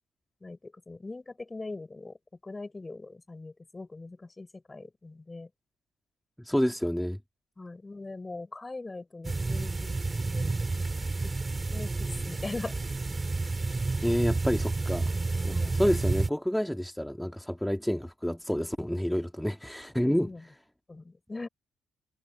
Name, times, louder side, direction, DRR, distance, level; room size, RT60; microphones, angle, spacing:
voice 1, 0.4-2.2 2.4-5.5 6.5-6.6 7.6-10.8 11.2-11.3 11.7-12.8 14.0-14.2 15.5-15.8 20.0-20.4 20.9-21.5, left 3 dB, 20° left, 5.9 m, -41 dB
voice 2, 6.4-7.2 14.0-15.1 15.4-20.3, equal, 5° left, 2.3 m, -29 dB
sound 1, 9.2-16.3, right 3 dB, 25° right, 3.0 m, -30 dB
cardioid pair, 90°, 0 cm